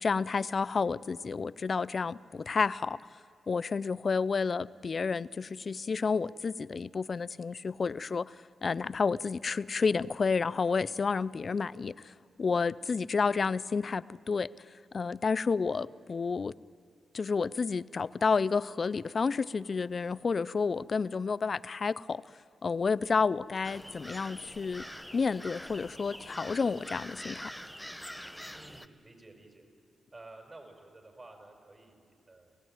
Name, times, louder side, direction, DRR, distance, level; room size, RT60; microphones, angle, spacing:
voice 1, 0.0-3.0 3.5-8.4 8.6-12.1 12.4-14.5 14.9-16.5 17.1-22.2 22.6-24.9 25.1-27.5, left 5 dB, 55° left, 20 dB, 0.5 m, -30 dB
sound 1, 23.6-28.9, equal, ahead, 1.0 m, -45 dB
voice 2, 28.5-29.7 30.1-32.6, right 2 dB, 40° right, 3 dB, 6.0 m, -52 dB
30.0 x 16.0 x 9.2 m, 2.3 s
supercardioid pair, 45°, 0 cm